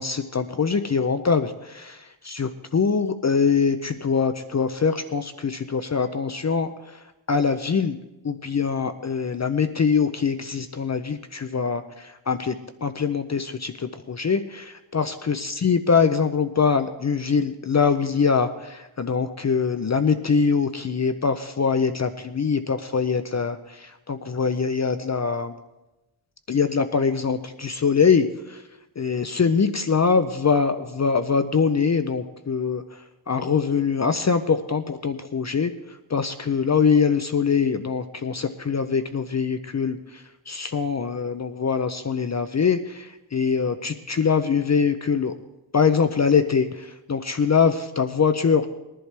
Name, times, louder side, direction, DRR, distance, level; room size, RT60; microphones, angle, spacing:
voice 1, 0.0-2.1 2.3-8.0 8.2-25.5 26.5-28.6 29.0-35.7 36.1-45.3 45.7-48.7, left 5 dB, 35° left, 10 dB, 0.5 m, -23 dB
20.5 x 11.0 x 3.4 m, 0.98 s
wide cardioid pair, 140°, 49 cm